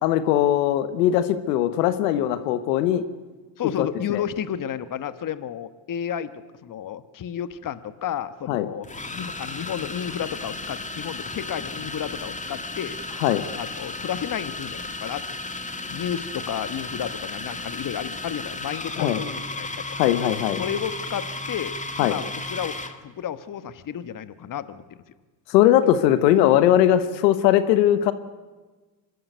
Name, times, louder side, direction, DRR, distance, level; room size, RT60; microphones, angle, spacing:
voice 1, 0.0-3.0 3.8-4.2 8.5-8.7 13.2-13.4 19.0-19.2 20.0-20.6 22.0-22.1 25.5-28.1, left 12 dB, 85° left, 12 dB, 1.2 m, -20 dB
voice 2, 3.6-6.3 6.6-13.0 13.5-15.2 15.9-19.8 20.6-22.7 23.0-24.8, left 9 dB, 40° left, 14 dB, 1.3 m, -32 dB
sound 1, 7.5-7.7 8.8-23.0, left 2 dB, 15° left, 1.9 m, -34 dB
24.5 x 13.0 x 9.3 m, 1.3 s
hypercardioid pair, 70°, 48 cm